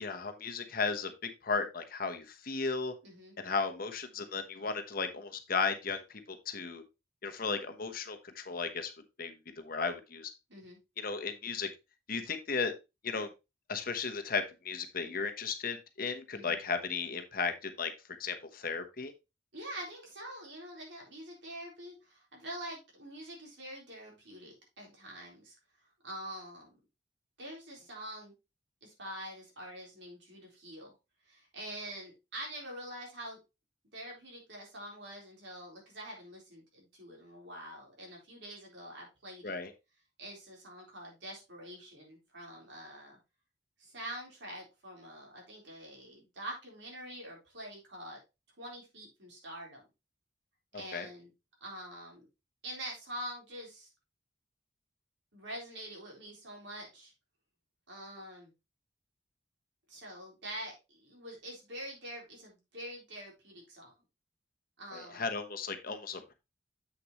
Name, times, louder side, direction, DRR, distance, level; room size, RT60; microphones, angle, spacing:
voice 1, 0.0-2.9 3.4-6.8 7.2-8.9 9.2-10.3 11.0-11.7 12.1-12.7 13.0-13.3 13.7-17.9 18.2-19.1 39.4-39.7 50.9-51.1 64.9-66.3, left 5 dB, 50° left, 7 dB, 1.1 m, -35 dB
voice 2, 3.0-3.4 10.5-10.8 16.3-16.6 19.5-25.5 26.0-26.7 27.4-28.3 28.8-30.9 31.2-33.4 33.9-39.6 40.2-43.2 43.8-48.2 48.6-49.8 50.7-51.3 51.6-52.3 52.6-53.9 55.3-57.1 57.9-58.5 59.9-63.9 64.8-65.3, right 1 dB, 70° right, -1 dB, 3.8 m, -45 dB
7.8 x 6.6 x 3.0 m, 0.25 s
head